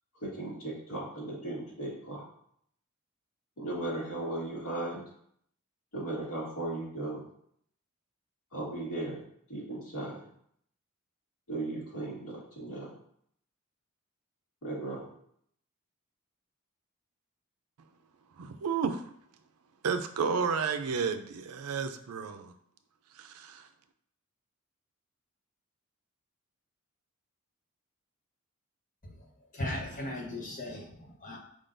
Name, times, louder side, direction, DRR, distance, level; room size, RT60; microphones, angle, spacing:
voice 1, 0.2-2.2 3.6-5.0 5.9-7.2 8.5-9.2 9.5-10.2 11.5-12.9 14.6-15.0, right 2 dB, 85° left, 1.9 m, -36 dB
voice 2, 18.4-19.1 19.8-22.5 23.1-23.7, right 5 dB, 85° right, 0.4 m, -32 dB
voice 3, 29.5-31.4, left 1 dB, 35° left, 1.0 m, -37 dB
5.0 x 3.7 x 2.6 m
head